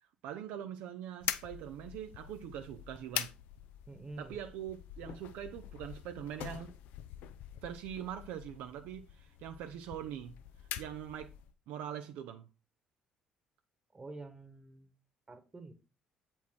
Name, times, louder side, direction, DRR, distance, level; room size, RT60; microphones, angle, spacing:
voice 1, 0.0-3.3 4.2-6.7 7.6-11.3 11.7-12.5, right 10 dB, 60° right, 0.5 m, -43 dB
sound 1, 1.2-11.5, left 11 dB, 60° left, 0.5 m, -44 dB
voice 2, 3.9-4.4 13.9-14.9 15.3-15.7, right 2 dB, 20° right, 1.3 m, -48 dB
8.0 x 4.4 x 4.5 m
figure-of-eight pair, 50°, 3 cm